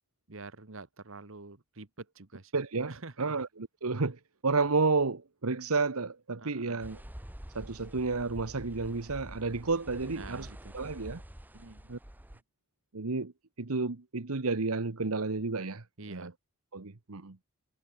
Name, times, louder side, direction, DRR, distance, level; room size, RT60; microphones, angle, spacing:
voice 1, 0.3-2.5 2.9-3.3 6.4-6.8 10.1-10.7 11.5-11.9 16.0-16.3, right 3 dB, 65° right, 1.5 m, -47 dB
voice 2, 2.5-7.0 7.5-10.5 10.7-11.2 11.9-12.0 12.9-13.3 13.6-16.3 16.7-17.4, right 3 dB, 85° right, 1.2 m, -31 dB
sound 1, 6.8-12.4, equal, 10° right, 1.0 m, -47 dB
head